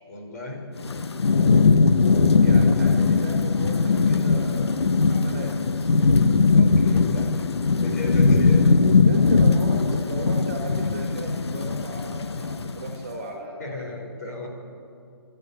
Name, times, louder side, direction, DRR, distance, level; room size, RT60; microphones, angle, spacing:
voice 1, 0.1-0.6 6.5-7.4 7.7-8.8 13.6-14.5, left 2 dB, 40° left, 0 dB, 5.3 m, -35 dB
Thunderstorm / Rain, 0.8-13.0, left 4 dB, 80° left, 1.0 m, -20 dB
voice 2, 2.4-6.2 9.1-13.6, right 2 dB, 25° right, 0 dB, 3.4 m, -36 dB
28.0 x 12.5 x 9.8 m, 2.5 s
hypercardioid pair, 175°, 14 cm